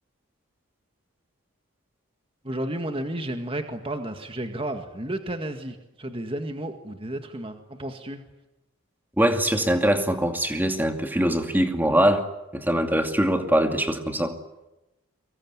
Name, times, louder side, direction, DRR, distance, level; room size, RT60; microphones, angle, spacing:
voice 1, 2.4-8.2, right 1 dB, 25° right, 6 dB, 1.9 m, -32 dB
voice 2, 9.2-12.3 12.5-14.3, right 1 dB, 10° right, 5 dB, 2.5 m, -22 dB
24.0 x 22.5 x 9.6 m, 0.97 s
head